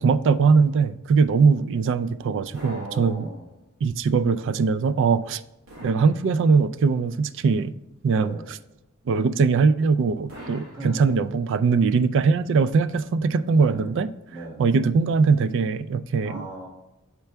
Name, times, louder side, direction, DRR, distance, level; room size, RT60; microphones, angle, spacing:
voice 1, 0.0-3.3 3.8-5.4 5.8-7.7 8.0-8.6 9.1-14.1 14.6-16.4, right 5 dB, 55° right, 0.3 m, -21 dB
voice 2, 2.2-3.5 8.1-8.5 10.7-11.1 13.5-13.9 14.3-14.6 16.2-16.7, right 2 dB, 20° right, 1.8 m, -38 dB
sound 1, 2.5-3.7 5.7-6.9 10.3-11.6, right 1 dB, 75° right, 1.7 m, -45 dB
6.9 x 4.5 x 3.3 m
head